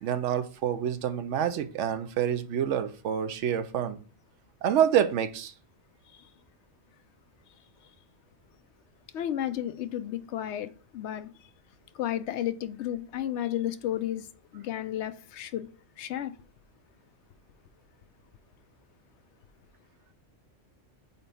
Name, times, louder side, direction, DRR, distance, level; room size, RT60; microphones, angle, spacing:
voice 1, 0.0-4.0 4.6-5.5, right 9 dB, 75° right, 0.9 m, -27 dB
voice 2, 9.1-11.3 11.9-14.3 14.5-15.7 16.0-16.3, left 11 dB, 70° left, 0.8 m, -32 dB
4.4 x 4.1 x 5.2 m
omnidirectional pair, 1.3 m